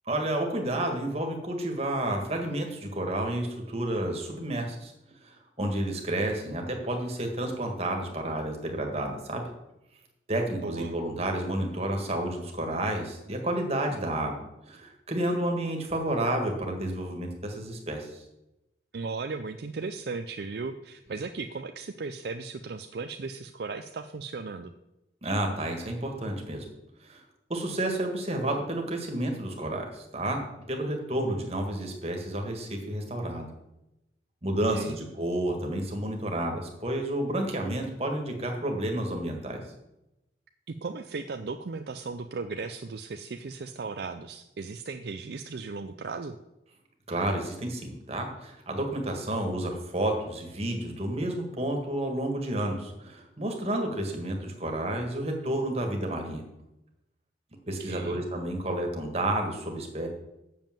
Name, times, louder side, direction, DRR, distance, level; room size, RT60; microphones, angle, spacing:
voice 1, 0.1-4.9 5.2-9.4 10.3-18.2 25.2-26.7 27.0-27.2 27.5-30.4 30.7-33.5 34.4-39.6 47.1-56.4 57.7-60.1, right 1 dB, 35° right, 2 dB, 1.8 m, -30 dB
voice 2, 10.5-11.0 18.9-24.7 34.7-35.0 40.7-46.4 57.8-58.2, right 4 dB, 60° right, 7 dB, 0.4 m, -36 dB
7.4 x 7.1 x 7.5 m, 0.92 s
head